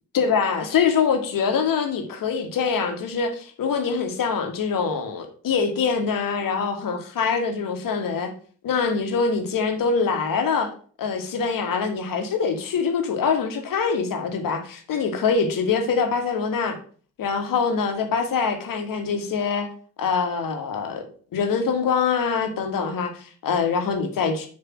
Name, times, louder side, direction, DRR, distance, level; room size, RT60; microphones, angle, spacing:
voice 1, 0.1-8.3 8.6-10.7 11.0-16.8 17.2-19.7 20.0-21.0 21.3-24.5, left 5 dB, 50° left, 1.5 m, -24 dB
6.7 x 3.3 x 6.0 m
figure-of-eight pair, 45°, 43 cm